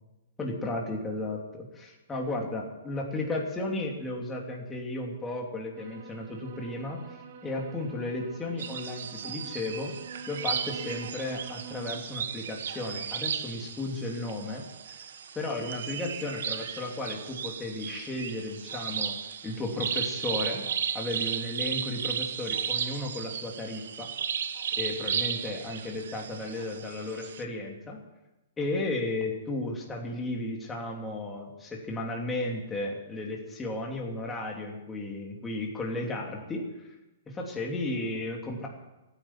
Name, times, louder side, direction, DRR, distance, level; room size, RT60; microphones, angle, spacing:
voice 1, 0.4-7.0 7.4-9.9 10.3-14.6 15.3-19.1 19.4-20.6 20.9-24.1 24.7-28.0 28.6-36.9 37.3-38.7, left 2 dB, 10° left, -1 dB, 2.9 m, -34 dB
sound 1, 5.8-11.9, right 5 dB, 45° right, 1.7 m, -47 dB
sound 2, 8.6-27.4, right 8 dB, 70° right, 1.1 m, -35 dB
15.0 x 10.0 x 8.9 m, 1.0 s
hypercardioid pair, 160°, 0 cm